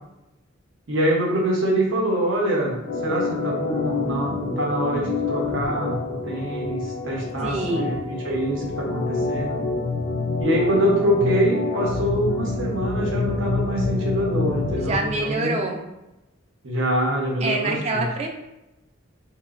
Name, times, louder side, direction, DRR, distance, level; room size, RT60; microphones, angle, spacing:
voice 1, 0.9-9.6 10.4-15.6 16.6-18.0, right 1 dB, 75° right, -2 dB, 0.7 m, -25 dB
Organ, 2.8-15.0, left 3 dB, 60° left, 0.3 m, -27 dB
voice 2, 7.4-7.9 14.8-15.8 17.4-18.3, right 2 dB, 30° right, 2 dB, 0.3 m, -25 dB
2.9 x 2.1 x 2.4 m, 0.95 s
head